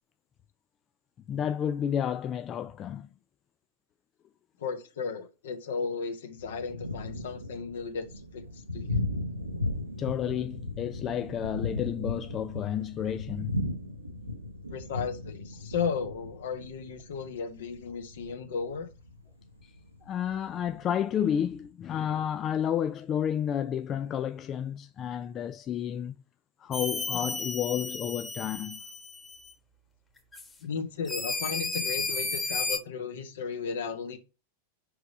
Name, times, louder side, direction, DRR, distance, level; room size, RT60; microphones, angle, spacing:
voice 1, 1.3-3.1 10.0-13.6 19.6-19.7 20.1-26.1 26.6-28.8, left 9 dB, 30° left, 0.4 m, -31 dB
voice 2, 4.6-9.0 14.7-18.9 30.6-34.2, left 5 dB, 60° left, 1.3 m, -35 dB
Thunder, 6.4-21.7, left 2 dB, 85° right, 0.9 m, -37 dB
sound 1, 26.7-29.5 30.3-30.5 31.0-32.8, left 3 dB, 15° left, 1.4 m, -33 dB
5.4 x 4.8 x 5.1 m
figure-of-eight pair, 90°, 0 cm